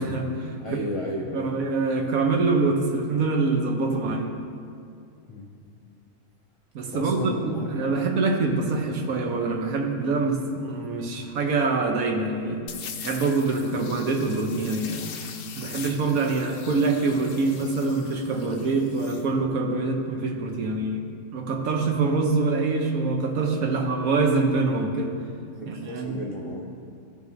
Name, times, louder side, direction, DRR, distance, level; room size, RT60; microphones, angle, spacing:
voice 1, 0.0-0.6 1.3-4.3 6.7-12.6 13.0-15.2 15.6-21.0 21.3-25.1 25.7-26.2, right 3 dB, 75° right, 3 dB, 1.3 m, -25 dB
voice 2, 0.6-1.5 5.3-5.5 6.9-8.1 25.5-26.7, left 1 dB, 50° left, -2 dB, 0.3 m, -34 dB
sound 1, 12.7-19.3, left 7 dB, 65° left, 0.9 m, -41 dB
14.5 x 5.2 x 2.6 m, 2.4 s
omnidirectional pair, 1.5 m